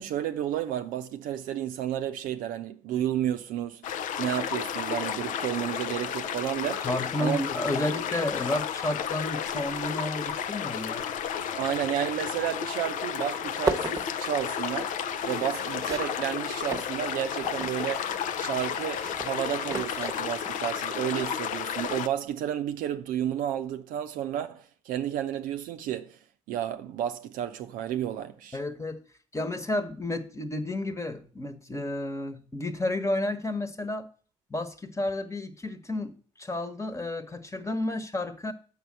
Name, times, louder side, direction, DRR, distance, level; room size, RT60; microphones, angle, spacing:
voice 1, 0.0-3.9 4.2-6.9 7.2-7.4 11.6-14.9 15.2-18.1 18.4-26.2 26.5-28.6, right 11 dB, 65° right, 0.7 m, -31 dB
sound 1, 3.8-22.1, left 8 dB, 60° left, 0.6 m, -32 dB
voice 2, 6.8-11.1 28.5-29.0 29.3-34.1 34.5-38.5, left 1 dB, 20° left, 1.2 m, -31 dB
sound 2, 13.1-20.5, right 3 dB, 20° right, 1.0 m, -37 dB
7.4 x 5.5 x 7.5 m
figure-of-eight pair, 45°, 15 cm